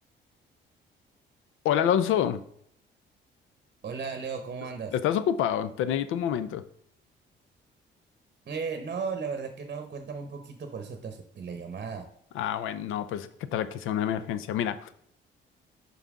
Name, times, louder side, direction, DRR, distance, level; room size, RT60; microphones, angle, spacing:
voice 1, 1.6-2.4 4.9-6.6 12.3-14.9, left 9 dB, 85° left, 14 dB, 0.5 m, -27 dB
voice 2, 3.8-4.9 8.5-12.1, right 5 dB, 45° right, 6 dB, 0.9 m, -35 dB
5.6 x 5.6 x 3.6 m, 0.67 s
cardioid pair, 90°, 20 cm